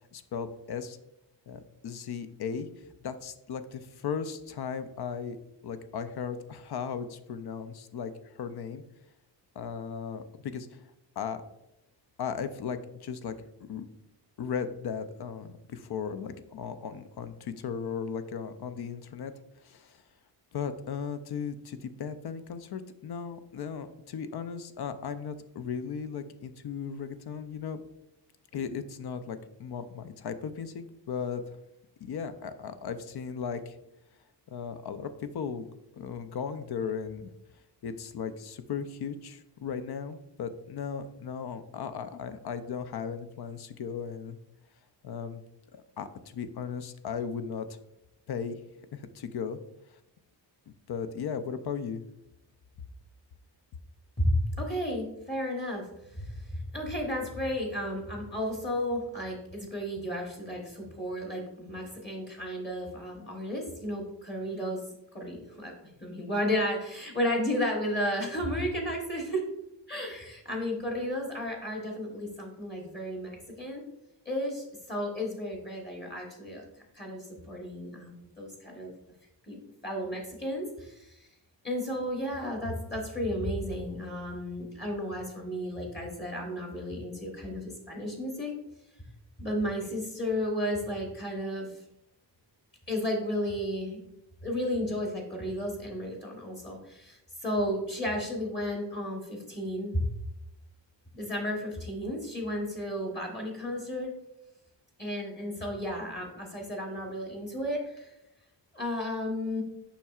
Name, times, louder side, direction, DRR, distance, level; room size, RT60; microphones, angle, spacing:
voice 1, 0.1-1.0 1.5-2.7 3.0-5.4 5.6-8.1 8.4-8.8 9.6-10.8 11.2-11.4 12.2-13.3 13.6-13.9 14.4-19.3 19.6-20.0 20.5-27.8 28.5-31.6 32.0-33.8 34.5-35.7 35.9-37.3 37.8-44.4 45.0-45.4 45.7-47.8 48.3-48.6 48.9-49.6 50.7-52.0, left 6 dB, 65° left, 10 dB, 0.5 m, -36 dB
voice 2, 54.2-64.8 65.1-65.7 66.0-69.4 69.9-73.8 74.2-76.6 76.9-78.9 79.5-81.3 81.6-88.5 89.4-91.8 92.9-94.0 94.4-100.0 101.1-104.1 105.0-108.1 108.7-109.6, equal, 25° left, -1 dB, 1.1 m, -33 dB
7.1 x 5.6 x 2.4 m, 0.86 s
wide cardioid pair, 165°, 43 cm